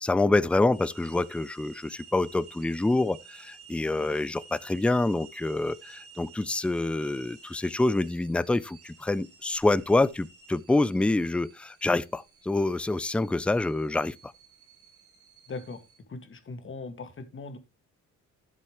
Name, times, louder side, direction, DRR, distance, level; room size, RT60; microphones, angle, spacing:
voice 1, 0.0-14.3, left 2 dB, 5° left, 0.4 m, -26 dB
sound 1, 0.7-16.0, right 6 dB, 50° right, 2.9 m, -52 dB
voice 2, 15.5-15.8 16.1-17.6, left 3 dB, 40° left, 2.0 m, -39 dB
12.0 x 7.6 x 3.1 m
cardioid pair, 90°, 30 cm